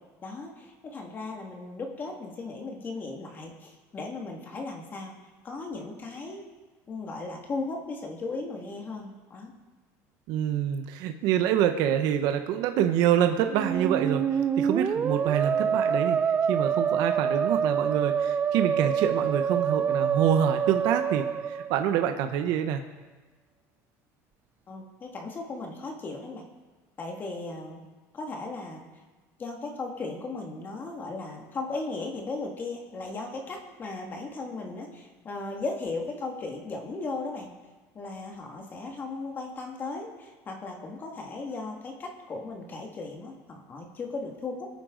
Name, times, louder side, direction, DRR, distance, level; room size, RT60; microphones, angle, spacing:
voice 1, 0.2-5.2 5.4-6.4 6.9-9.5 24.7-26.4 27.0-27.8 28.1-28.8 29.4-37.5 37.9-44.7, left 3 dB, 25° left, 1 dB, 2.0 m, -36 dB
voice 2, 10.3-16.2 16.5-22.8, right 10 dB, 65° right, 7 dB, 0.9 m, -26 dB
Musical instrument, 13.5-22.2, right 7 dB, 25° right, 0.4 m, -26 dB
24.0 x 9.2 x 3.9 m, 1.3 s
cardioid pair, 145°, 7 cm